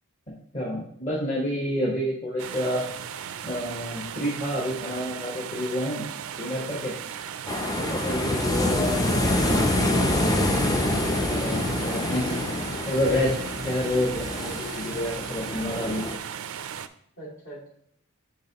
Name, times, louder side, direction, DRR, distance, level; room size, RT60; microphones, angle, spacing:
voice 1, 0.3-2.8 3.4-6.1 6.4-6.9 7.7-9.6 11.2-12.3 12.8-13.3 13.6-16.1, left 1 dB, 35° left, -5 dB, 1.2 m, -29 dB
sound 1, 2.4-16.9, right 8 dB, 75° right, 0.4 m, -37 dB
sound 2, 7.5-16.2, left 1 dB, 15° left, 0.5 m, -26 dB
sound 3, 9.7-16.1, left 1 dB, 80° left, 2.0 m, -38 dB
voice 2, 10.9-11.8 17.2-17.7, right 1 dB, 60° left, -5 dB, 2.4 m, -43 dB
10.5 x 3.5 x 2.9 m, 0.69 s
head